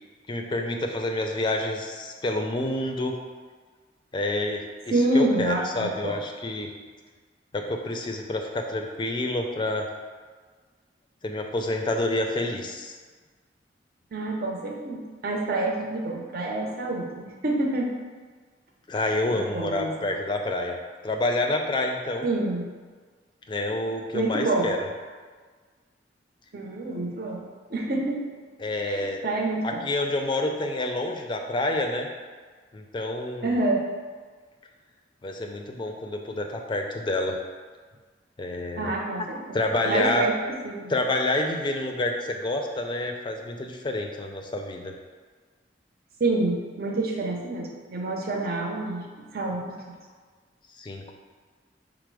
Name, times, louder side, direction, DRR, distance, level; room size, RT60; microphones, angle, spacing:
voice 1, 0.3-3.2 4.1-4.7 5.1-6.7 7.5-9.9 11.2-13.0 18.9-20.8 21.0-22.3 23.5-24.8 28.6-29.2 29.6-32.1 32.7-33.5 35.2-37.4 38.4-38.9 39.5-40.3 40.9-44.9 50.8-51.1, left 2 dB, 25° left, 3 dB, 0.4 m, -28 dB
voice 2, 4.9-6.2 14.1-17.9 19.3-19.9 22.2-22.7 24.1-24.7 26.5-28.2 28.8-29.8 33.4-33.8 38.8-39.6 39.9-40.3 40.6-40.9 46.2-49.1 49.3-49.9, right 2 dB, 60° right, -1 dB, 0.7 m, -27 dB
4.9 x 2.0 x 4.6 m, 1.5 s
head